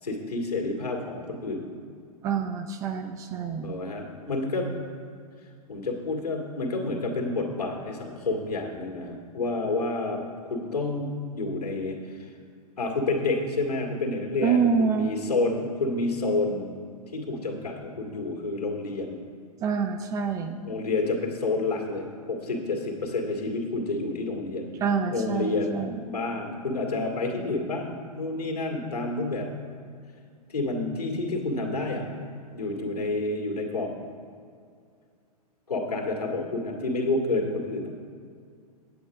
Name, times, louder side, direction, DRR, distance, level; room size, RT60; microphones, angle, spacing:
voice 1, 0.0-1.7 3.6-4.7 5.7-12.3 12.8-16.7 17.1-19.2 20.6-24.7 25.1-25.7 26.0-29.5 30.5-32.1 32.5-33.9 35.7-37.9, left 2 dB, 75° left, 1 dB, 2.0 m, -29 dB
voice 2, 2.2-3.7 14.4-15.1 19.6-20.6 24.8-26.0, right 6 dB, 15° right, 7 dB, 0.4 m, -26 dB
8.6 x 8.3 x 5.0 m, 2.2 s
figure-of-eight pair, 105°, 20 cm